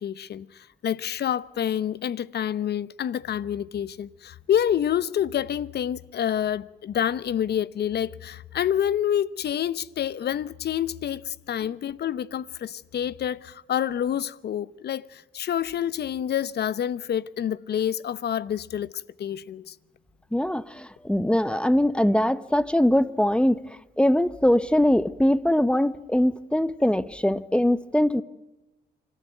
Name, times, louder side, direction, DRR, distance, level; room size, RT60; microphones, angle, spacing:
voice 1, 0.0-18.9 19.2-19.7, left 10 dB, 55° left, 0.8 m, -28 dB
voice 2, 20.3-23.6 24.0-28.2, left 1 dB, 5° left, 0.8 m, -22 dB
26.0 x 14.0 x 9.2 m
cardioid pair, 90°, 20 cm